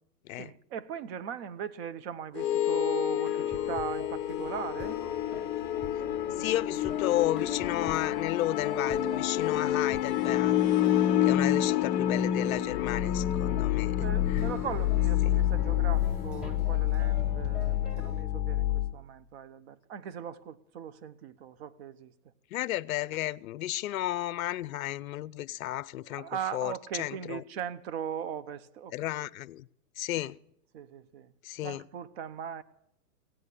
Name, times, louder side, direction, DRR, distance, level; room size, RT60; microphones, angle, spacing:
voice 1, 0.4-5.0 14.0-22.1 26.1-29.1 30.7-31.3 31.6-32.6, right 8 dB, 40° right, 0.8 m, -39 dB
sound 1, 2.4-18.9, left 12 dB, 20° left, 0.9 m, -28 dB
sound 2, 3.0-18.2, left 2 dB, ahead, 0.6 m, -46 dB
sound 3, 3.5-16.9, left 1 dB, 80° right, 6.1 m, -53 dB
voice 2, 6.4-10.6 11.2-14.0 14.3-14.4 22.5-26.7 27.0-27.4 28.9-29.7 30.0-30.4 31.4-31.8, left 14 dB, 60° left, 0.6 m, -33 dB
16.5 x 9.4 x 8.2 m
hypercardioid pair, 140°, 48 cm